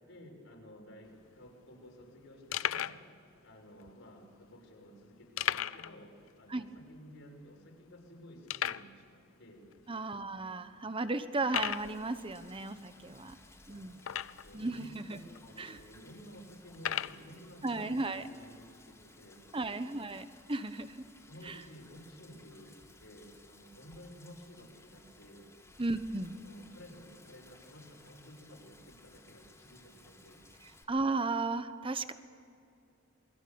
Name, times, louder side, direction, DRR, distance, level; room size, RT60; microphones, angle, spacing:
voice 1, 0.0-3.0 3.4-9.7 12.9-19.8 21.2-25.5 26.3-30.4, equal, 70° left, 1 dB, 6.0 m, -54 dB
sound 1, 1.1-1.2 1.3-1.5 2.0-2.1 2.5-3.0 3.8-3.9 5.4-6.0 6.2-6.3 6.8-6.9 7.5-7.6 8.5-8.9 9.7-9.8 10.4-10.5 11.4-11.9 14.0-14.6 15.3-15.4 16.7-17.2, left 10 dB, 85° left, 0.6 m, -34 dB
voice 2, 9.9-13.4 13.7-14.0 14.5-15.2 15.6-15.8 17.6-18.3 19.5-21.0 21.4-21.6 25.8-26.4 30.6-32.1, right 3 dB, 25° right, 11 dB, 1.1 m, -35 dB
Rain, 11.5-30.8, left 2 dB, 15° left, 3.4 m, -59 dB
28.0 x 22.0 x 7.0 m, 2.5 s
head